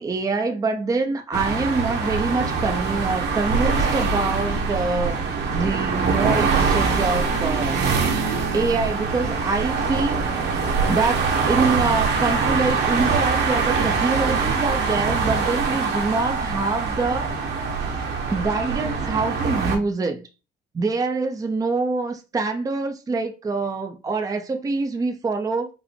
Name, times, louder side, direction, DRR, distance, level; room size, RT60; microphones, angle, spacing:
voice 1, 0.0-5.2 5.5-17.3 18.3-20.3 20.7-25.7, right 3 dB, 20° right, 0.6 m, -25 dB
sound 1, 1.3-19.8, right 4 dB, 60° right, 1.3 m, -23 dB
5.5 x 2.1 x 4.2 m
cardioid pair, 135°, 20 cm